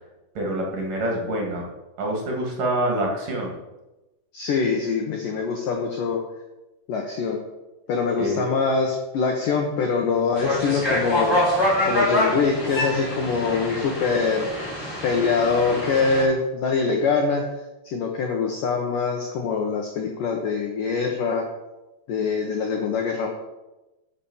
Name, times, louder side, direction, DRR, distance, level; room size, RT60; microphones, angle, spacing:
voice 1, 0.3-1.7 2.0-3.5 8.2-8.5, right 1 dB, 50° right, -1 dB, 3.2 m, -26 dB
voice 2, 4.3-6.2 6.9-7.4 7.9-11.4 11.9-14.5 15.0-17.4 17.8-21.4 22.1-23.3, left 5 dB, 75° left, 2 dB, 2.0 m, -24 dB
sound 1, 10.4-16.2, left 1 dB, 5° left, 3.9 m, -25 dB
10.0 x 7.1 x 7.1 m, 1.0 s
omnidirectional pair, 5.5 m